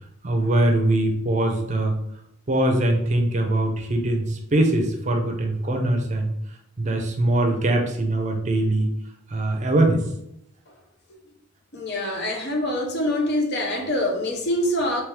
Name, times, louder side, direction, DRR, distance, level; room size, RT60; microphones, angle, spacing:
voice 1, 0.2-2.0 2.5-6.3 6.8-8.9 9.3-10.0, right 1 dB, 35° right, 3 dB, 0.5 m, -22 dB
voice 2, 11.7-15.0, left 1 dB, 55° left, 2 dB, 0.7 m, -25 dB
3.5 x 3.2 x 3.2 m, 0.76 s
head